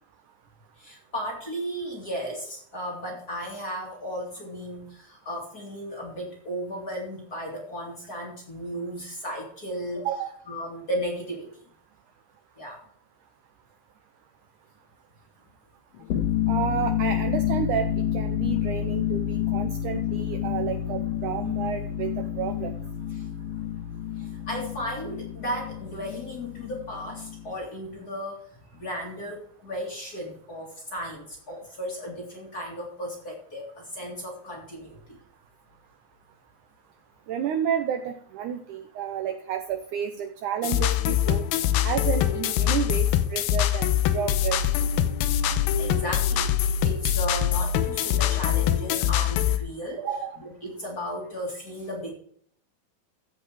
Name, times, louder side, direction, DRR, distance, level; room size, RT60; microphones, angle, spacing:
voice 1, 0.8-10.1 10.5-11.5 12.6-12.8 23.1-23.3 24.2-35.2 45.8-52.1, equal, 30° left, -1 dB, 2.2 m, -35 dB
sound 1, 16.0-27.5, left 10 dB, 75° left, 3.6 m, -29 dB
voice 2, 16.5-22.7 37.3-41.4 41.8-44.8 50.0-50.4, right 8 dB, 75° right, 7 dB, 1.9 m, -31 dB
sound 2, 40.6-49.6, left 10 dB, 90° left, 2.6 m, -24 dB
15.5 x 5.2 x 4.8 m, 0.62 s
omnidirectional pair, 4.2 m